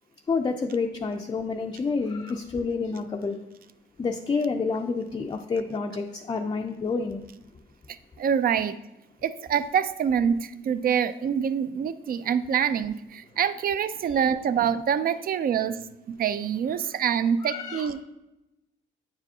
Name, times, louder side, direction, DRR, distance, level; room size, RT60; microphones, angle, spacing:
voice 1, 0.3-3.4 4.0-7.2 17.4-17.9, left 4 dB, 20° left, 3 dB, 0.4 m, -28 dB
voice 2, 8.2-8.8 9.2-15.8 16.1-18.0, right 8 dB, 50° right, 13 dB, 0.4 m, -25 dB
8.6 x 4.9 x 2.7 m, 0.95 s
cardioid pair, 90°, 20 cm